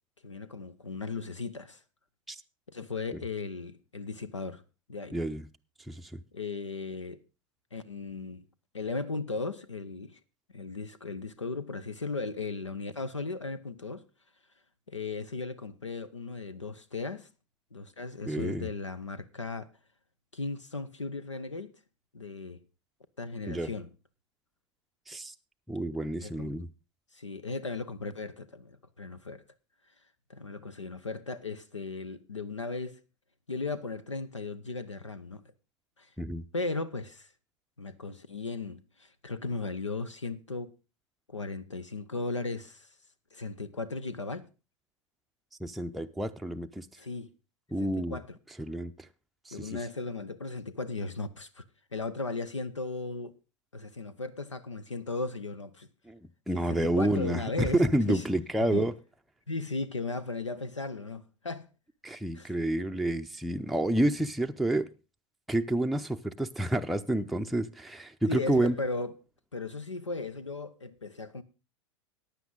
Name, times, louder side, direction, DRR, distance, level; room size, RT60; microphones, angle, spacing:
voice 1, 0.2-1.8 2.7-4.6 4.9-5.2 6.3-7.2 7.7-8.4 8.7-10.2 10.5-14.0 14.9-17.3 17.7-19.7 20.3-21.7 22.1-22.6 23.2-23.9 26.2-26.5 27.1-29.4 30.3-33.0 33.5-35.4 36.0-36.1 36.5-37.3 37.8-40.7 41.3-42.9 43.3-44.5 47.0-47.3 47.8-48.4 49.5-51.6 51.9-53.3 53.7-55.9 56.5-58.2 58.7-58.9 59.5-61.7 62.3-62.5 68.3-69.2 69.5-71.4, left 3 dB, 90° left, 0.7 m, -36 dB
voice 2, 5.1-5.4 5.9-6.1 18.3-18.7 23.5-23.7 25.1-25.3 25.7-26.7 36.2-36.4 45.6-46.9 47.7-48.2 48.6-48.9 49.5-49.8 56.1-56.2 56.5-58.9 62.0-64.9 65.5-68.8, right 1 dB, ahead, 0.5 m, -29 dB
15.0 x 9.8 x 3.8 m
figure-of-eight pair, 85°, 15 cm